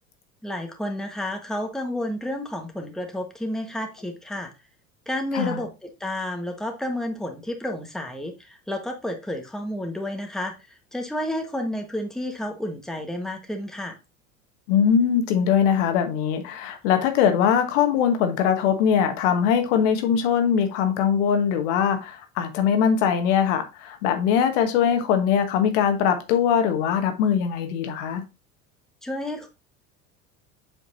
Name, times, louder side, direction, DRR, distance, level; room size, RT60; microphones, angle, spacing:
voice 1, 0.4-4.5 5.1-10.5 10.9-14.0 29.0-29.5, left 1 dB, ahead, 1.5 m, -31 dB
voice 2, 14.7-28.2, left 8 dB, 60° left, 1.4 m, -21 dB
7.6 x 5.2 x 2.7 m
figure-of-eight pair, 70°, 41 cm